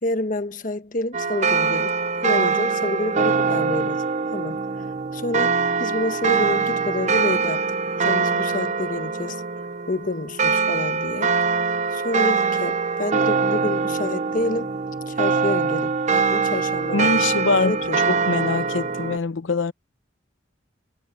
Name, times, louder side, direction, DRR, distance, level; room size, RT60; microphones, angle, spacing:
voice 1, 0.0-4.9 5.1-9.4 9.9-11.4 11.9-14.7 15.1-17.3 17.5-18.0, left 2 dB, 45° left, 1.2 m, -28 dB
sound 1, 1.1-19.2, right 5 dB, 40° right, 0.7 m, -23 dB
voice 2, 16.9-17.7 18.1-19.7, left 3 dB, 90° left, 0.8 m, -23 dB
head